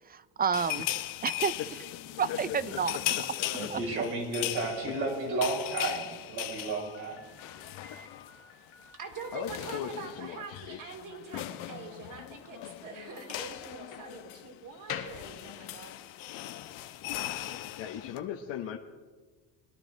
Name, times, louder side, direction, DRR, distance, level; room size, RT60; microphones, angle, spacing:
voice 1, 0.1-0.9 1.2-1.5 2.2-3.0 3.7-3.8, right 6 dB, 20° right, 16 dB, 0.3 m, -29 dB
sound 1, 0.5-8.4 8.7-8.9 9.1-18.2, left 14 dB, 90° left, 1.0 m, -38 dB
voice 2, 2.3-2.8 3.1-3.7 9.3-11.0 17.8-18.8, left 9 dB, 70° left, 1 dB, 1.2 m, -38 dB
voice 3, 3.5-7.2, right 3 dB, 85° right, -2 dB, 6.2 m, -32 dB
Slam, 6.7-16.1, left 7 dB, 50° left, 1.6 m, -48 dB
voice 4, 9.0-15.9, right 4 dB, 45° right, 4 dB, 2.7 m, -44 dB
23.5 x 12.0 x 4.0 m, 1.4 s
cardioid pair, 130°, 46 cm